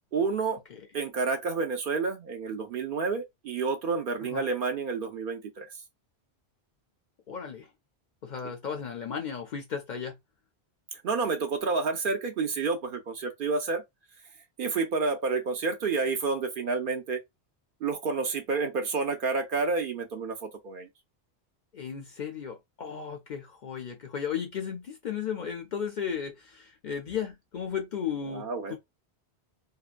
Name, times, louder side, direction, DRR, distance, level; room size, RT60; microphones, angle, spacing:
voice 1, 0.1-0.6 0.9-5.7 11.0-13.8 14.6-17.2 17.8-20.9 28.3-28.8, right 4 dB, 60° right, 0.6 m, -29 dB
voice 2, 7.3-7.7 8.2-10.2 21.7-28.8, left 7 dB, 55° left, 0.5 m, -35 dB
2.8 x 2.2 x 2.4 m
omnidirectional pair, 1.1 m